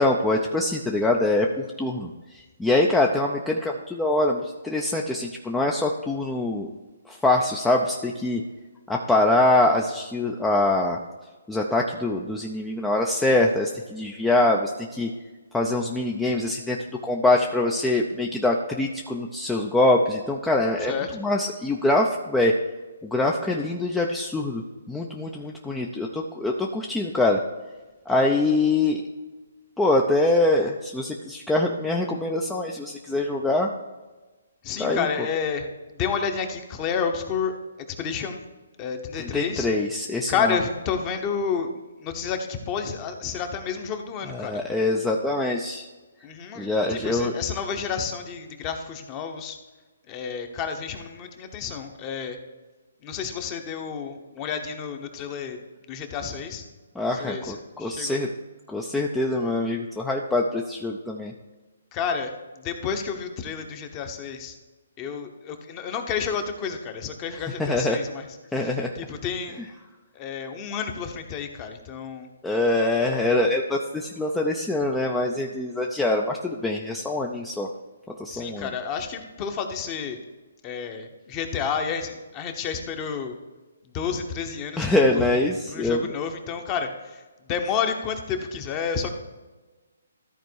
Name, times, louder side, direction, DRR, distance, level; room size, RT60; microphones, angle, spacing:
voice 1, 0.0-6.7 7.1-8.4 8.9-11.0 11.5-15.1 15.5-16.8 17.0-22.5 23.0-27.4 28.1-29.0 29.8-33.7 34.8-35.1 39.2-40.6 44.3-45.9 46.6-47.3 57.0-58.3 58.7-61.3 67.6-68.0 68.5-68.9 72.4-77.7 78.2-78.7 84.8-86.1, left 2 dB, 5° left, 0 dB, 0.5 m, -24 dB
voice 2, 34.6-35.7 35.9-37.5 37.9-38.4 38.8-39.7 40.3-41.7 42.0-44.6 46.2-49.6 50.1-52.4 53.0-55.6 55.9-56.6 57.2-58.2 61.9-64.6 65.0-68.3 68.5-69.6 70.1-72.3 73.0-73.3 78.3-80.2 80.6-83.3 83.9-85.3 85.7-87.2 87.5-89.2, left 6 dB, 25° left, 6 dB, 1.0 m, -30 dB
13.5 x 4.5 x 4.6 m, 1.2 s
hypercardioid pair, 150°, 0 cm